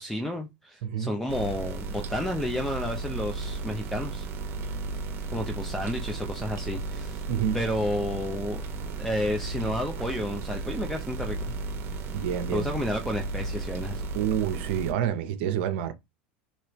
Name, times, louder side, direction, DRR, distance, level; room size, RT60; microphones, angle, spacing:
voice 1, 0.0-4.3 5.3-7.2 7.5-8.6 9.0-11.6 12.5-14.1, left 1 dB, 5° left, 0.5 m, -31 dB
voice 2, 0.8-1.1 7.3-7.6 12.1-12.7 14.1-15.9, right 9 dB, 70° right, 0.6 m, -28 dB
sound 1, 1.3-14.9, right 3 dB, 45° right, 0.9 m, -34 dB
3.2 x 2.9 x 2.9 m
hypercardioid pair, 100°, 6 cm